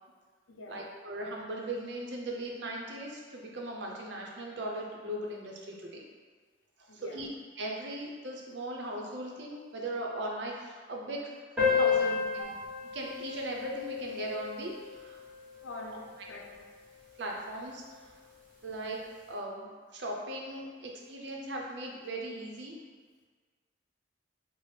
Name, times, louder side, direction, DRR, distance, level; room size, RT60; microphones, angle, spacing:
voice 1, 0.7-6.0 6.8-7.3 7.6-11.3 11.7-12.5 12.9-15.2 17.2-18.1 18.6-19.0 19.3-22.8, right 1 dB, 65° right, -1 dB, 0.6 m, -38 dB
sound 1, 11.6-16.5, left 6 dB, 10° right, 1.1 m, -32 dB
voice 2, 15.6-16.6, left 2 dB, 85° left, -1 dB, 0.6 m, -45 dB
4.2 x 2.0 x 3.2 m, 1.5 s
head